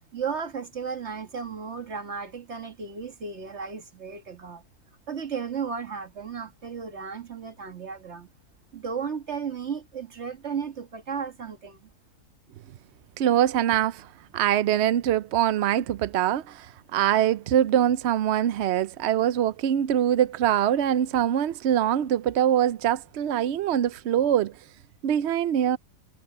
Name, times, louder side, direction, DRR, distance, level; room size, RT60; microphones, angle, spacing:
voice 1, 0.1-4.6 5.1-8.3 8.7-11.9, right 6 dB, 45° right, 1.9 m, -34 dB
voice 2, 13.2-14.1 14.3-24.5 25.0-25.8, right 10 dB, 65° right, 0.7 m, -23 dB
omnidirectional pair, 1.7 m